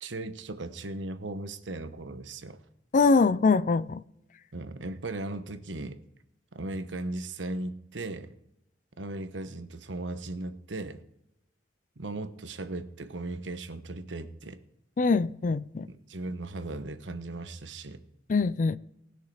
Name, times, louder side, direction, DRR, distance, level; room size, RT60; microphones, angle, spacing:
voice 1, 0.0-2.6 4.5-6.0 6.5-8.3 9.0-11.0 12.0-14.6 15.9-18.0, right 2 dB, 90° right, 1.1 m, -37 dB
voice 2, 2.9-4.0 15.0-15.9 18.3-18.8, left 4 dB, 45° left, 0.4 m, -23 dB
19.0 x 6.6 x 4.9 m
head